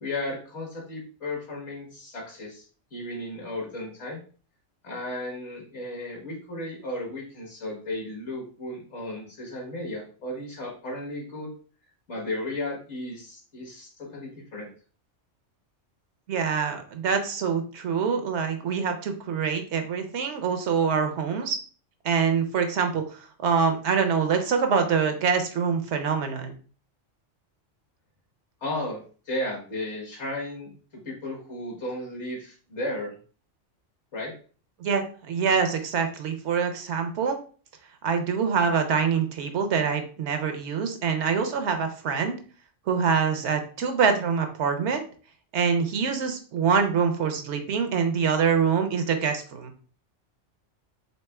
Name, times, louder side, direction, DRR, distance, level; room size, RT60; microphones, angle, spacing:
voice 1, 0.0-2.6 2.9-4.2 4.8-11.5 12.1-14.7 28.6-30.7 31.0-33.2 34.1-34.3, left 1 dB, 65° left, -1 dB, 1.6 m, -34 dB
voice 2, 16.3-21.6 22.0-26.5 34.8-37.4 38.0-42.4 42.9-45.0 45.5-49.7, right 6 dB, 70° right, 6 dB, 0.9 m, -25 dB
4.2 x 3.4 x 2.2 m, 0.40 s
omnidirectional pair, 1.3 m